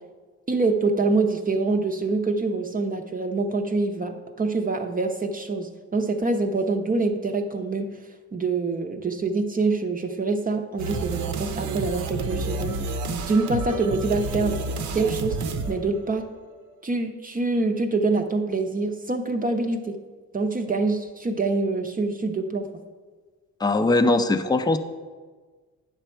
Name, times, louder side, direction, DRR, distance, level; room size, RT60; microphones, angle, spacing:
voice 1, 0.5-12.8 13.1-14.6 14.9-15.4 15.7-16.3 16.8-20.0 20.3-22.7, right 3 dB, 30° right, 4 dB, 0.6 m, -25 dB
sound 1, 10.8-16.5, right 3 dB, 75° right, 0.8 m, -30 dB
voice 2, 23.6-24.8, left 2 dB, 15° left, 9 dB, 0.5 m, -20 dB
9.0 x 6.0 x 4.4 m, 1.4 s
cardioid pair, 90°, 30 cm